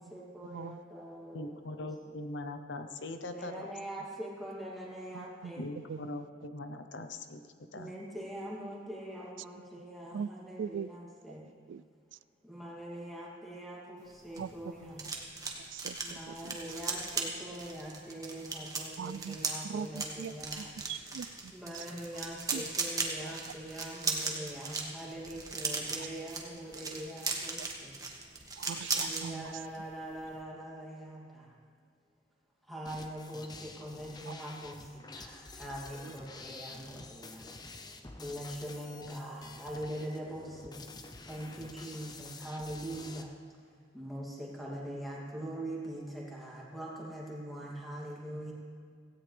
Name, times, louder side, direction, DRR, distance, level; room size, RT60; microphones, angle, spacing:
voice 1, 0.0-2.2 3.3-5.7 7.7-11.5 12.4-15.1 16.0-20.8 21.5-28.1 29.0-31.5 32.7-37.5 38.2-40.9 41.3-43.3 43.9-48.5, right 1 dB, ahead, 2.7 m, -43 dB
voice 2, 1.3-3.7 5.6-7.4 7.7-7.9, left 2 dB, 75° left, 0.8 m, -41 dB
voice 3, 5.1-5.5 5.9-6.0 10.1-10.3 10.6-10.9 11.7-11.8 14.4-14.5 14.8-14.9 15.7-16.6 19.0-19.4 19.7-21.9 22.5-22.6 28.6-29.6 34.3-34.4 36.0-36.1, right 7 dB, 75° right, 0.3 m, -41 dB
sound 1, 14.1-29.3 29.6-29.9 30.1-30.4, right 4 dB, 20° right, 1.4 m, -37 dB
sound 2, 32.9-43.2, left 3 dB, 20° left, 0.7 m, -49 dB
17.0 x 16.5 x 3.4 m
head